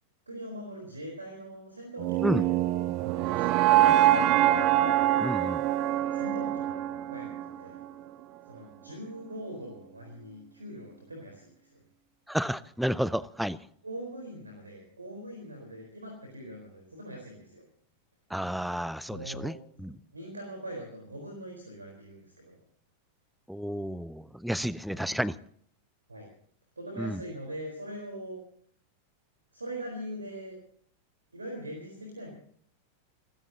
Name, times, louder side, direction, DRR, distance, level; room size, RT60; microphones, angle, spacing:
voice 1, 0.3-4.1 6.1-6.8 7.1-7.3 7.6-7.8 8.4-11.8 13.8-17.6 19.1-22.6 24.9-25.2 26.1-26.3 26.8-28.4 29.5-30.6 31.3-32.3, equal, 80° right, 1 dB, 4.2 m, -42 dB
sound 1, 2.0-8.1, right 13 dB, 40° right, 0.8 m, -25 dB
voice 2, 5.2-5.7 12.3-13.6 18.3-20.0 23.5-25.4 27.0-27.2, equal, ahead, 21 dB, 0.5 m, -31 dB
29.0 x 15.5 x 2.9 m, 0.62 s
figure-of-eight pair, 90°, 0 cm